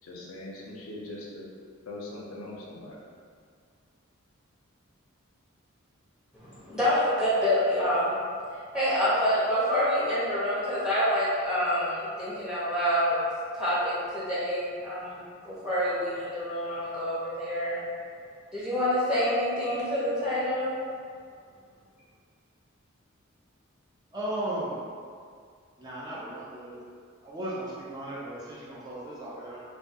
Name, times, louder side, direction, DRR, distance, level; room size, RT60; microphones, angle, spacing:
voice 1, 0.0-1.5 1.9-3.0, left 2 dB, 80° left, -3 dB, 0.5 m, -41 dB
voice 2, 6.4-8.1 8.7-13.2 13.6-15.2 15.4-17.8 18.5-20.7, equal, 5° right, -11 dB, 0.7 m, -27 dB
voice 3, 24.1-24.8 25.8-26.8 27.2-29.6, right 1 dB, 20° right, -7 dB, 0.4 m, -36 dB
2.2 x 2.2 x 2.7 m, 2.1 s
head